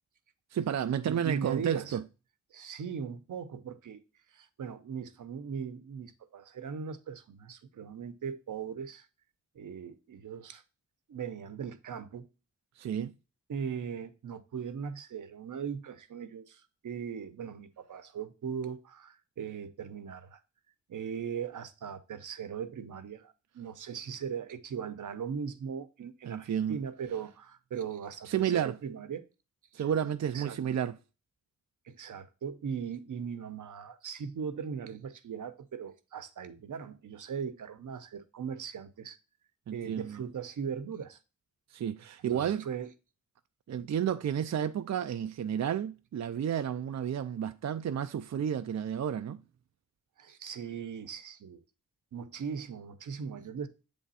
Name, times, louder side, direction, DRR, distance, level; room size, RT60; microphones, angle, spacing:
voice 1, 0.5-2.0 12.8-13.1 26.3-26.8 28.3-28.8 29.7-31.0 39.7-40.2 41.7-42.7 43.7-49.4, right 9 dB, 60° right, 0.5 m, -31 dB
voice 2, 1.1-2.0 2.5-4.0 4.3-9.1 9.5-10.6 11.1-12.3 13.5-20.4 20.9-29.2 29.8-29.9 30.3-30.6 31.9-39.2 39.7-41.2 42.3-42.9 50.2-51.6 52.1-53.7, right 7 dB, 90° right, 0.8 m, -39 dB
8.4 x 3.4 x 4.0 m
wide cardioid pair, 95°, 30 cm